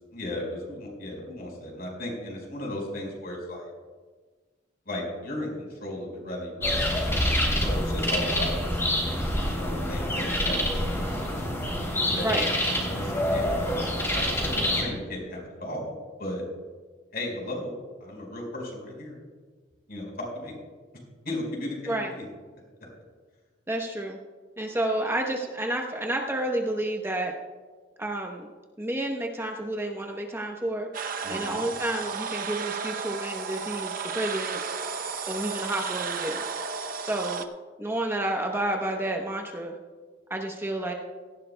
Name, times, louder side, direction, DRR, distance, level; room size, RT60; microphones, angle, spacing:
voice 1, 0.1-3.7 4.9-7.3 7.6-8.6 9.1-10.8 11.9-15.9 16.2-16.4 17.1-17.7 18.0-19.1 19.9-20.5 21.2-22.2 31.2-31.6, left 1 dB, 55° left, -1 dB, 4.6 m, -35 dB
sound 1, 6.6-14.8, left 1 dB, 15° left, 3.0 m, -26 dB
voice 2, 23.7-24.2 24.6-27.3 28.0-28.5 28.8-30.9 31.3-34.6 35.3-36.4 37.0-37.4 37.8-39.7 40.3-40.9, right 1 dB, 15° right, 1 dB, 0.8 m, -30 dB
sound 2, 30.9-37.5, right 5 dB, 50° right, 0.7 m, -33 dB
17.5 x 15.0 x 2.2 m, 1.4 s
head